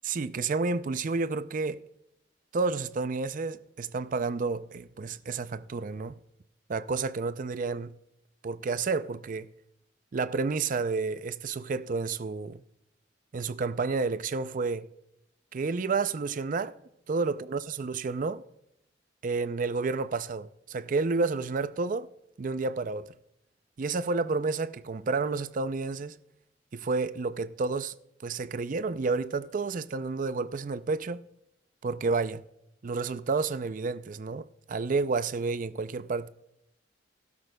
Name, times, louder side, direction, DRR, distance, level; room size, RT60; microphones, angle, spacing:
voice 1, 0.0-1.8 2.5-6.2 6.7-7.9 8.4-9.5 10.1-12.6 13.3-14.9 15.5-16.7 17.1-18.4 19.2-22.1 22.4-23.1 23.8-26.2 26.7-27.9 28.2-31.3 31.8-32.4 32.8-36.3, right 4 dB, 45° right, 0.4 m, -30 dB
16.0 x 12.5 x 2.3 m
head